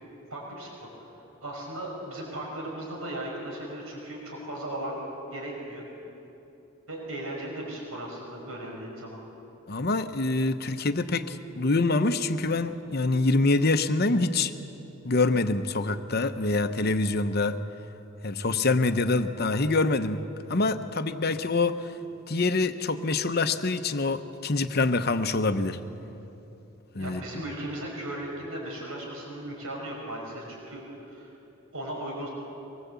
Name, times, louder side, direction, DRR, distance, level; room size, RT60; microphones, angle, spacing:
voice 1, 0.3-0.9 1.4-5.0 5.3-5.8 6.9-9.2 27.0-31.3 31.7-32.3, right 1 dB, 85° right, -1 dB, 5.6 m, -37 dB
voice 2, 9.7-14.5 15.0-17.6 18.2-20.2 20.5-21.9 22.3-25.8 26.9-27.2, left 3 dB, 50° left, 9 dB, 0.9 m, -25 dB
24.0 x 20.0 x 8.3 m, 3.0 s
head